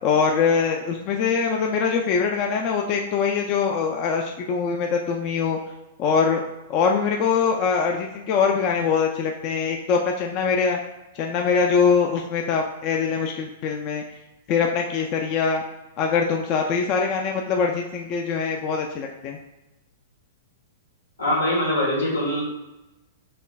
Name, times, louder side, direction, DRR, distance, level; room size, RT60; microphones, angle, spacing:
voice 1, 0.0-5.6 6.0-6.4 6.7-10.8 11.2-14.0 14.5-15.6 16.0-19.4, left 5 dB, 40° left, 1 dB, 0.4 m, -23 dB
voice 2, 21.2-22.5, left 1 dB, 85° left, -3 dB, 1.5 m, -23 dB
4.2 x 3.3 x 2.4 m, 1.0 s
hypercardioid pair, 115°, 0 cm